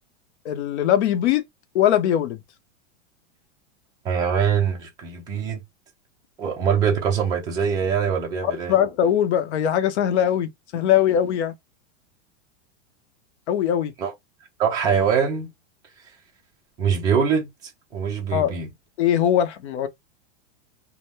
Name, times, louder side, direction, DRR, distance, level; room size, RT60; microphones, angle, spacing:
voice 1, 0.4-1.4 1.7-2.4 8.4-11.5 13.5-13.9 18.3-18.6 19.0-19.9, left 10 dB, 65° left, 0.7 m, -21 dB
voice 2, 4.0-5.6 6.4-8.7 14.0-14.1 14.6-15.5 16.8-17.5 17.9-18.7, right 7 dB, 10° right, 0.4 m, -23 dB
2.6 x 2.0 x 3.2 m
supercardioid pair, 165°, 36 cm